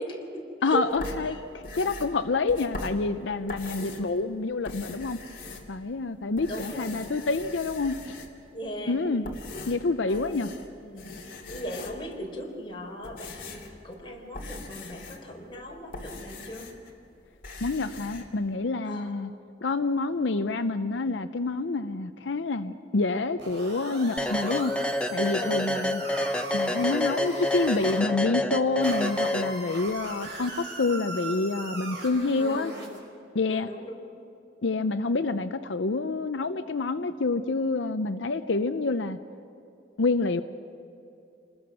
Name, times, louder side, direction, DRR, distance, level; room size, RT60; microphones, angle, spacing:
voice 1, 0.0-0.8 1.3-1.4 6.4-6.9 8.5-9.0 9.5-10.5 10.8-11.1 11.5-16.7 18.8-19.1 25.3-26.0 32.4-32.8 33.5-34.1, equal, 30° left, -1 dB, 4.1 m, -38 dB
voice 2, 0.6-5.2 5.7-8.1 8.9-9.3 9.7-10.5 17.6-19.3 19.6-24.7 25.1-26.0 26.5-32.7 33.3-33.7 34.6-39.2 40.0-40.4, left 3 dB, 85° left, 9 dB, 0.7 m, -27 dB
sound 1, 0.9-4.2 4.5-6.0 6.3-8.5 9.1-10.7 11.0-12.2 12.7-16.9 17.2-18.3, left 2 dB, 50° left, 2.7 m, -41 dB
sound 2, 23.4-28.0 28.8-33.0, right 2 dB, 70° right, 5.7 m, -39 dB
sound 3, 24.2-30.0, left 1 dB, 5° left, 0.7 m, -28 dB
28.0 x 20.5 x 6.3 m, 2.7 s
head